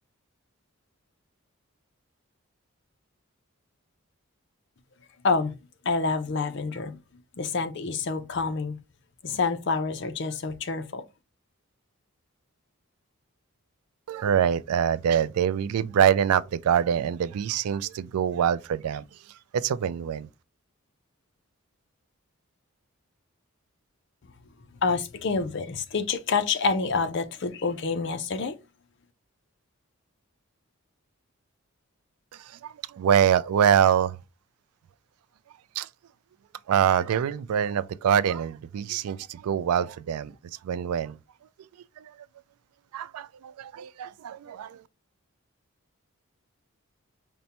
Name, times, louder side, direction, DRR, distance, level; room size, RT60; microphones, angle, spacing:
voice 1, 5.8-7.0 7.4-8.8 9.2-11.0 24.8-28.6, left 4 dB, 55° left, 0.5 m, -27 dB
voice 2, 14.1-19.0 19.5-20.3 32.3-34.2 35.8-35.9 36.7-40.3 40.6-41.2 42.0-42.1 42.9-44.8, right 8 dB, 90° right, 0.3 m, -25 dB
5.2 x 2.2 x 2.8 m
head